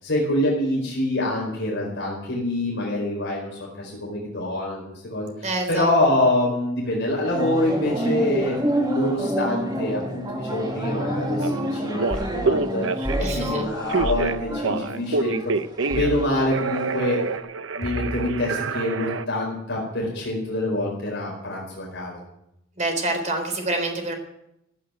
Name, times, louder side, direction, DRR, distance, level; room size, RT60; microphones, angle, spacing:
voice 1, 0.0-3.5 3.8-8.5 8.8-12.0 12.3-12.9 13.2-15.5 15.9-17.2 17.7-22.2, left 1 dB, 60° left, -2 dB, 4.8 m, -25 dB
voice 2, 5.4-5.9 13.2-13.6 22.8-24.2, right 2 dB, 35° right, 5 dB, 3.8 m, -26 dB
sound 1, 7.2-17.4, equal, 20° right, 2.1 m, -29 dB
Telephone, 11.4-11.5 11.9-13.3 13.9-16.2 16.5-19.3, right 4 dB, 65° right, 0.7 m, -27 dB
sound 2, 12.1-12.4 13.0-13.3 14.0-14.3 15.9-16.2 17.8-18.3, equal, 20° left, 3.8 m, -30 dB
16.0 x 8.4 x 9.4 m, 0.82 s
head